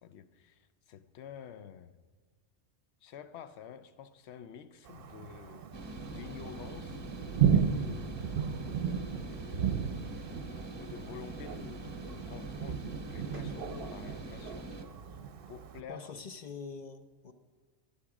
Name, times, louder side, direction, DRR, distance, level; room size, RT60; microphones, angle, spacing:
voice 1, 0.0-1.9 3.0-5.7 6.1-7.2 7.5-8.1 9.3-10.0 10.8-14.7 15.5-16.2, left 8 dB, 70° left, 12 dB, 0.9 m, -49 dB
Thunder, 4.9-15.8, right 8 dB, 60° right, 0.8 m, -34 dB
sound 1, 5.7-14.8, right 2 dB, 25° right, 0.7 m, -44 dB
voice 2, 15.9-17.3, left 5 dB, 45° left, 8 dB, 0.7 m, -44 dB
13.0 x 12.0 x 4.9 m, 1.5 s
omnidirectional pair, 1.2 m